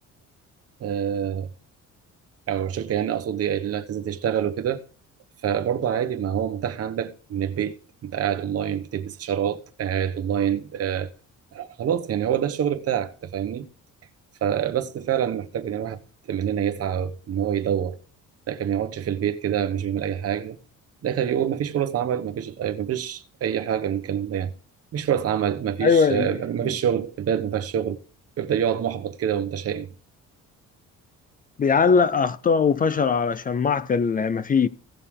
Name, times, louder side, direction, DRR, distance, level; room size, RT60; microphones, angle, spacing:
voice 1, 0.8-1.5 2.5-4.8 5.4-7.8 8.0-11.1 11.5-13.7 14.4-16.0 16.3-18.0 18.5-20.6 21.0-24.5 24.9-28.0 28.4-29.9, right 9 dB, 50° right, 1.1 m, -26 dB
voice 2, 25.8-26.3 26.6-26.7 31.6-34.7, left 5 dB, 25° left, 0.5 m, -20 dB
17.0 x 6.6 x 3.7 m
cardioid pair, 145°, 31 cm